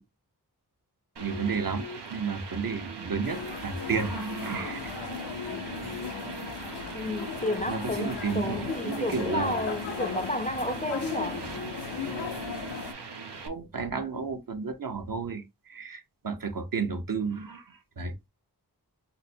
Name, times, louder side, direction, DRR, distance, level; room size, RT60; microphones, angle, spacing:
voice 1, 1.2-1.9 2.1-5.0 7.7-9.6 13.4-15.4 15.7-18.3, right 5 dB, 55° right, 0.8 m, -32 dB
sound 1, 1.2-13.5, right 3 dB, 90° right, 0.7 m, -40 dB
sound 2, 3.2-12.9, left 6 dB, 90° left, 0.6 m, -37 dB
voice 2, 6.9-11.5, left 1 dB, 20° left, 0.4 m, -31 dB
5.6 x 2.0 x 2.6 m
wide cardioid pair, 40°, 40 cm